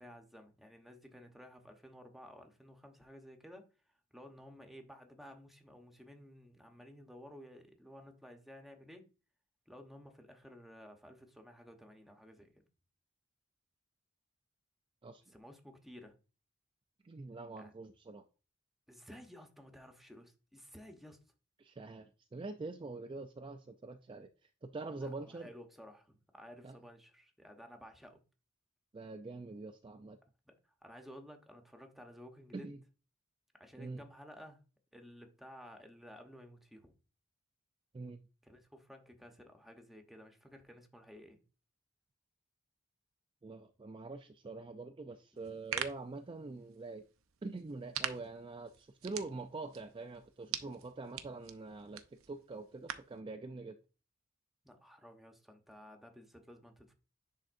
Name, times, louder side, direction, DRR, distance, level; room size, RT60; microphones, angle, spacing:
voice 1, 0.0-3.7 4.1-9.1 9.7-12.6 15.3-16.1 17.6-17.7 18.9-21.2 25.0-28.2 30.5-30.6 30.8-32.7 33.5-34.6 34.9-36.9 38.4-41.4 45.4-45.5 54.6-56.9, equal, ahead, 0.9 m, -54 dB
voice 2, 15.0-15.3 17.0-18.2 21.6-24.3 24.6-25.5 26.6-26.8 28.9-30.2 32.5-32.8 33.8-34.0 37.9-38.2 43.4-47.1 47.4-53.8, right 3 dB, 25° right, 0.4 m, -45 dB
sound 1, 45.4-53.2, right 9 dB, 90° right, 0.6 m, -45 dB
10.5 x 3.7 x 2.5 m
head